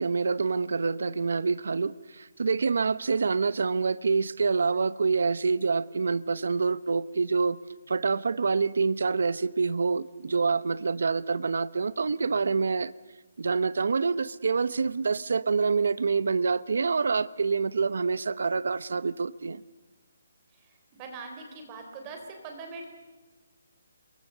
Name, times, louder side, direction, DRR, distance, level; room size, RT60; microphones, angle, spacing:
voice 1, 0.0-7.6 7.9-12.9 13.4-19.6, right 4 dB, 65° right, 17 dB, 0.9 m, -26 dB
voice 2, 21.0-22.9, right 4 dB, 15° right, 3 dB, 3.7 m, -41 dB
28.5 x 23.0 x 6.8 m, 1.2 s
hypercardioid pair, 175°, 0 cm